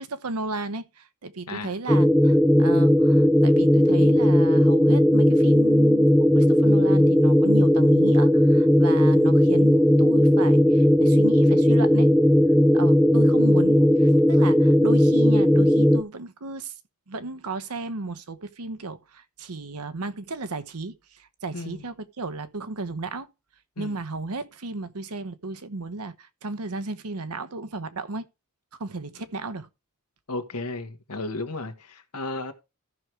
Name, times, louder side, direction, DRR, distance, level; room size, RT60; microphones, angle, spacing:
voice 1, 0.0-12.1 12.7-16.7 17.1-23.3 23.8-28.3 28.8-29.7, right 3 dB, 80° right, 1.0 m, -34 dB
sound 1, 1.9-16.0, equal, ahead, 0.4 m, -17 dB
voice 2, 21.5-21.9 23.8-24.0 30.3-32.5, left 2 dB, 90° left, 1.7 m, -34 dB
14.0 x 6.3 x 3.3 m
head